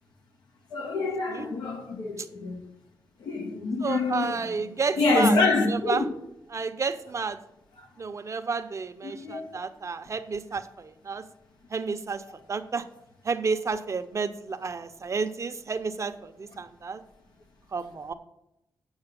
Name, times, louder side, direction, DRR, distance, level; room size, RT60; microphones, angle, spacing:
voice 1, 0.7-2.6 3.2-4.4 5.0-6.0 9.0-9.5, left 3 dB, 90° left, 1.7 m, -26 dB
voice 2, 3.8-5.4 5.7-6.0 6.5-7.4 8.0-11.2 11.7-12.2 12.5-12.8 13.2-17.0 17.7-18.1, right 4 dB, 45° right, 0.8 m, -31 dB
8.1 x 6.5 x 6.8 m
cardioid pair, 75°, 7 cm